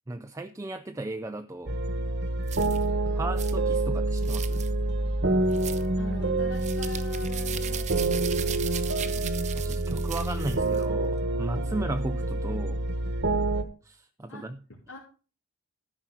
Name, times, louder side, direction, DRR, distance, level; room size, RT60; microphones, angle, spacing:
voice 1, 0.1-1.7 3.1-4.7 9.5-12.8 13.8-14.6, right 2 dB, 15° right, 8 dB, 0.4 m, -35 dB
sound 1, 1.7-13.6, right 2 dB, 55° right, 1.1 m, -27 dB
sound 2, 2.5-2.8 3.4-3.6 4.2-4.7 5.5-5.9 6.6-10.8, right 9 dB, 35° right, 0.8 m, -38 dB
voice 2, 6.0-8.5 9.1-9.3 14.3-14.4 14.7-15.0, left 2 dB, 75° left, -4 dB, 2.6 m, -44 dB
13.0 x 5.8 x 6.0 m, 0.38 s
head